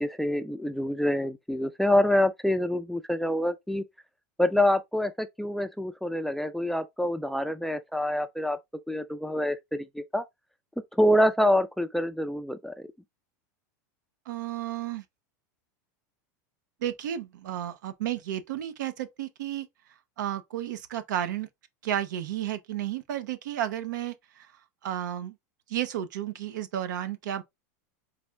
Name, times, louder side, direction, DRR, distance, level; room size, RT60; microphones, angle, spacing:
voice 1, 0.0-3.8 4.4-8.6 8.9-10.2 10.9-12.9, left 1 dB, ahead, 0.3 m, -26 dB
voice 2, 14.3-15.0 16.8-19.7 20.2-21.5 21.8-24.5 24.8-25.4 25.7-27.4, right 11 dB, 85° right, 0.7 m, -32 dB
4.2 x 2.4 x 3.3 m
supercardioid pair, 135°, 10 cm